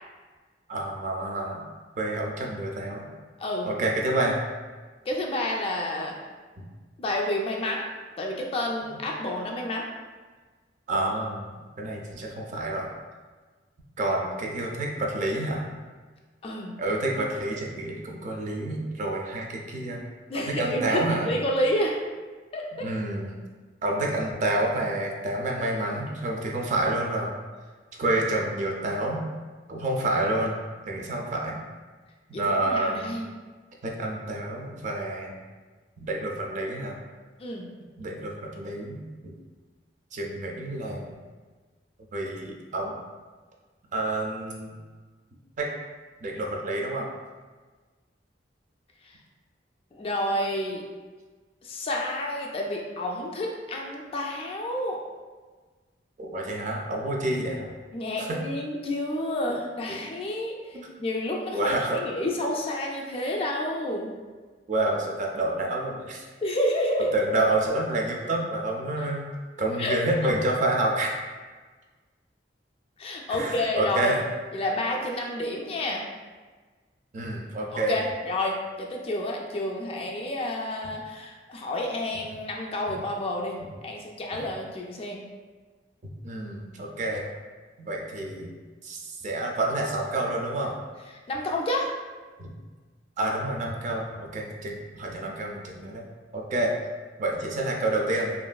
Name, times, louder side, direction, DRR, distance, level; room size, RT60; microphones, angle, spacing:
voice 1, 0.7-1.7 2.0-3.1 3.7-4.4 10.9-12.9 14.0-15.7 16.8-20.0 20.3-21.3 22.8-23.4 23.8-27.3 28.0-29.2 29.7-30.5 30.9-31.6 32.3-33.2 33.8-35.4 36.0-37.0 38.0-39.0 40.1-41.1 42.1-43.0 43.9-44.8 45.6-45.7 46.2-47.1 56.2-57.7 58.2-58.4 59.9-60.0 60.7-60.9 61.5-62.0 64.7-66.2 67.1-69.3 69.6-71.2 73.3-74.2 77.1-78.0 86.0-87.3 87.8-88.5 88.8-90.8 92.4-92.5 93.2-96.0 96.3-96.7 97.2-98.3, right 1 dB, 45° right, 0 dB, 0.4 m, -28 dB
voice 2, 5.1-6.1 7.0-7.8 8.2-9.9 16.4-16.7 20.3-22.0 22.5-22.9 32.3-33.2 37.4-37.7 49.9-50.8 51.6-55.0 57.9-64.1 66.4-67.1 69.0-69.1 69.8-70.0 73.0-74.2 74.5-76.0 77.7-85.2 91.3-91.9, left 1 dB, 30° left, 0 dB, 0.3 m, -29 dB
3.0 x 2.4 x 2.2 m, 1.4 s
head